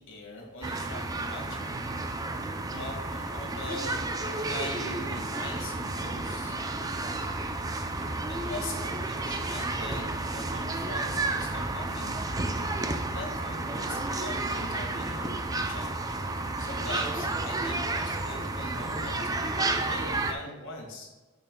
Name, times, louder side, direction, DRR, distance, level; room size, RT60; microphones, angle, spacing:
voice 1, 0.0-1.8 2.4-6.6 8.3-12.2 12.5-15.9 16.3-21.1, left 2 dB, 60° left, 0 dB, 1.8 m, -42 dB
sound 1, 0.6-20.3, right 2 dB, 15° right, 0.4 m, -31 dB
8.7 x 6.6 x 2.2 m, 1.2 s
head